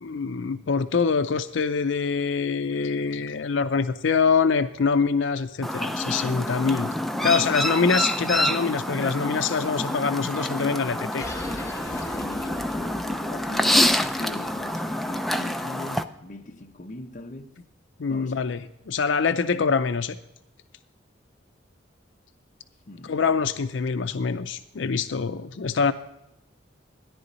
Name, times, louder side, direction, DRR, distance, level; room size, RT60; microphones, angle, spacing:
voice 1, 0.0-6.9 7.2-11.3 11.6-12.1 18.0-18.6 18.9-20.2 23.1-25.9, left 5 dB, 75° left, 0.5 m, -25 dB
Chirp tweet, 5.6-16.0, left 1 dB, ahead, 0.4 m, -27 dB
sound 1, 11.2-16.2, left 1 dB, 15° left, 1.3 m, -40 dB
voice 2, 11.9-17.5 18.1-18.5 22.9-23.4, left 2 dB, 40° left, 0.7 m, -41 dB
14.0 x 10.5 x 4.1 m
head